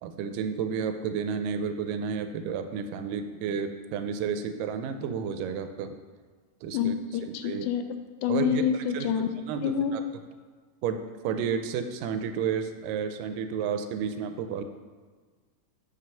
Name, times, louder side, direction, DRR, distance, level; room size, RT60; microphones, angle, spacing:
voice 1, 0.0-6.0 6.6-6.9 7.3-7.7 8.3-8.6 8.9-9.1 9.5-9.6 9.9-10.0 10.8-11.0 11.2-14.6, right 7 dB, 85° right, 8 dB, 2.2 m, -31 dB
voice 2, 6.7-9.3 9.6-10.0, left 8 dB, 80° left, 8 dB, 1.9 m, -28 dB
7.5 x 5.1 x 5.6 m, 1.5 s
omnidirectional pair, 3.9 m